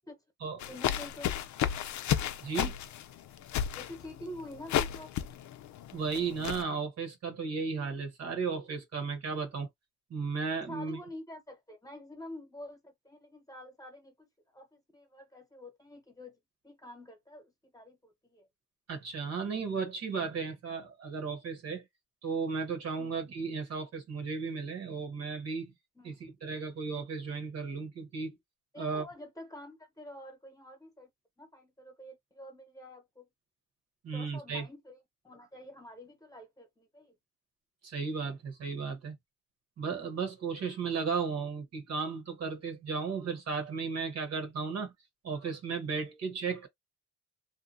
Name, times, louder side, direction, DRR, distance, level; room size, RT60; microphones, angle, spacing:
sound 1, 0.6-6.6, left 10 dB, 70° left, 0.5 m, -33 dB
voice 1, 0.7-1.3 3.7-5.1 10.7-14.3 14.5-16.4 16.6-18.5 23.0-23.1 25.9-26.2 28.7-31.1 31.4-33.3 34.1-35.0 35.2-37.1, left 1 dB, 10° left, 1.1 m, -47 dB
voice 2, 2.4-2.8 5.9-9.7 10.1-11.0 18.9-21.8 22.2-25.7 26.0-26.2 26.4-28.4 28.8-29.0 34.0-34.6 37.8-39.1 39.8-44.9 45.2-46.7, right 5 dB, 60° right, 1.2 m, -35 dB
2.7 x 2.1 x 2.7 m
cardioid pair, 90°, 30 cm